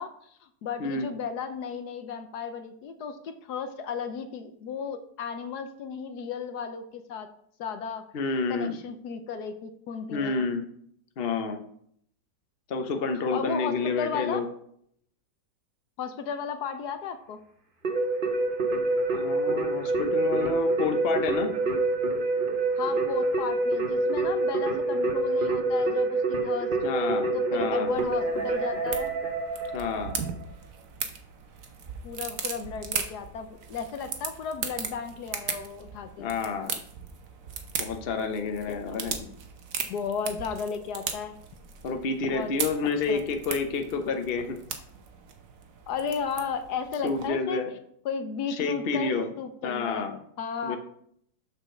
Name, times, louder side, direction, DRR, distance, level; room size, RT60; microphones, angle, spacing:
voice 1, 0.0-7.3 7.6-8.0 8.5-10.5 13.1-14.4 16.0-17.4 22.8-26.7 27.3-29.1 32.0-36.3 38.7-39.0 39.9-41.3 42.3-42.5 43.1-43.2 45.9-47.6 48.0-50.0 50.4-50.8, left 6 dB, 65° left, 8 dB, 1.2 m, -34 dB
voice 2, 0.8-1.1 8.1-8.8 10.1-10.6 11.2-11.6 12.7-14.5 19.1-21.5 26.8-27.9 29.7-30.2 36.2-36.8 37.8-39.3 41.8-44.6 47.0-47.7 48.6-49.3 49.6-50.2 50.6-50.8, left 4 dB, 50° left, 5 dB, 0.7 m, -29 dB
Keyboard (musical), 17.8-30.3, right 2 dB, 35° right, 1.0 m, -27 dB
sound 1, 27.9-47.3, right 6 dB, 55° right, 1.2 m, -38 dB
6.5 x 5.1 x 6.3 m, 0.68 s
omnidirectional pair, 2.0 m